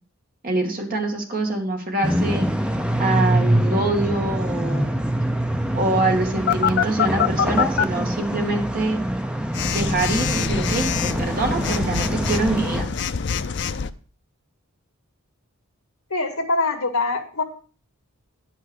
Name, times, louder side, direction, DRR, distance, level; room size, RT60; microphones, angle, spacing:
voice 1, 0.4-2.5 3.0-5.0 5.7-9.0 9.7-12.9, right 2 dB, 40° right, 2 dB, 2.1 m, -24 dB
sound 1, 2.0-12.8, right 1 dB, 5° right, 0.5 m, -24 dB
Telephone, 6.5-7.8 9.5-13.9, left 7 dB, 50° left, 0.5 m, -24 dB
voice 2, 16.1-17.4, left 3 dB, 70° left, 5 dB, 2.0 m, -23 dB
10.0 x 5.9 x 6.3 m, 0.40 s
head